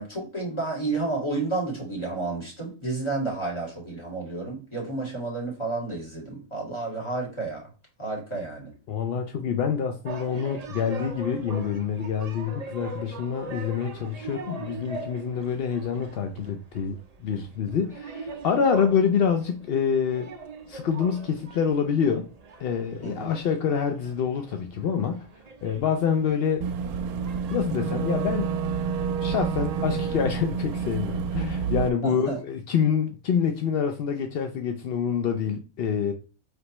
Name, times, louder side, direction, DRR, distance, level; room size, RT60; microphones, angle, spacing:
voice 1, 0.0-7.7 8.0-8.7 23.0-23.3 32.0-32.4, right 3 dB, 20° left, 2.0 m, -31 dB
voice 2, 8.9-20.3 20.7-22.3 22.6-25.3 25.6-26.6 27.5-28.6 29.2-36.1, left 7 dB, 65° left, 0.6 m, -26 dB
sound 1, 10.0-27.6, right 3 dB, 55° right, 0.4 m, -41 dB
Boat Water vehicle / Engine, 26.6-31.9, right 6 dB, 80° right, 1.1 m, -28 dB
5.2 x 3.1 x 2.9 m
omnidirectional pair, 1.6 m